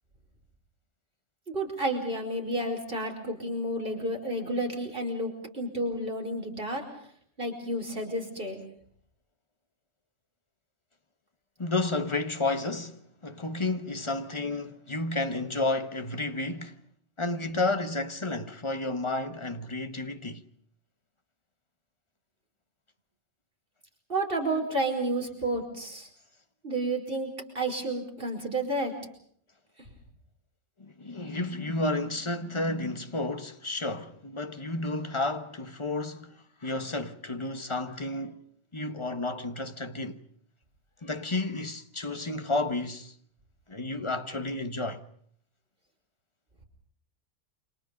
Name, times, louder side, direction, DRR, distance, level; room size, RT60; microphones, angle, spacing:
voice 1, 1.5-6.8 7.4-8.6 24.1-26.1 26.6-28.9, right 1 dB, 45° right, 5.3 m, -31 dB
voice 2, 11.6-16.8 17.2-20.4 30.8-38.5 38.7-40.2 41.0-43.1 43.7-45.0, left 2 dB, 25° left, 1.3 m, -31 dB
29.0 x 26.0 x 5.2 m
omnidirectional pair, 1.3 m